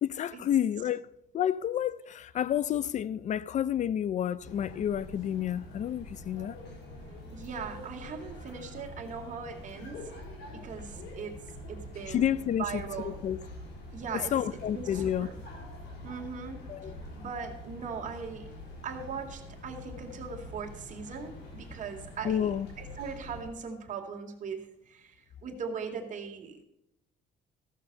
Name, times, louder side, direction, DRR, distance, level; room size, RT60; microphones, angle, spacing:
voice 1, 0.0-1.1 1.3-6.6 12.1-13.4 14.3-15.3 16.7-16.9 22.2-22.7, left 10 dB, 45° left, 0.4 m, -30 dB
sound 1, 4.4-23.5, left 1 dB, 85° left, 3.8 m, -45 dB
voice 2, 7.3-10.2 10.5-11.4 11.7-12.3 12.6-13.2 13.9-14.3 14.7-15.4 16.0-16.9 17.2-18.5 18.8-26.6, right 6 dB, 50° right, 2.2 m, -40 dB
14.5 x 6.8 x 6.6 m
cardioid pair, 110°, 17 cm